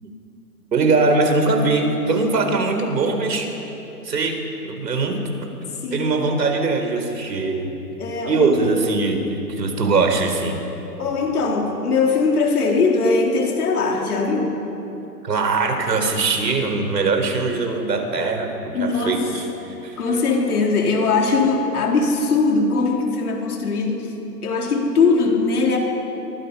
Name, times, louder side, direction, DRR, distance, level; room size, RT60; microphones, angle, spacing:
voice 1, 0.7-3.5 4.0-5.2 5.9-7.7 8.3-10.6 15.2-19.5 19.8-20.0, right 3 dB, 85° right, 5 dB, 4.5 m, -21 dB
voice 2, 5.8-6.3 8.0-8.8 11.0-14.6 18.7-19.3 20.0-25.8, left 4 dB, 65° left, 0 dB, 4.2 m, -20 dB
26.0 x 22.5 x 5.7 m, 3.0 s
hypercardioid pair, 155°, 48 cm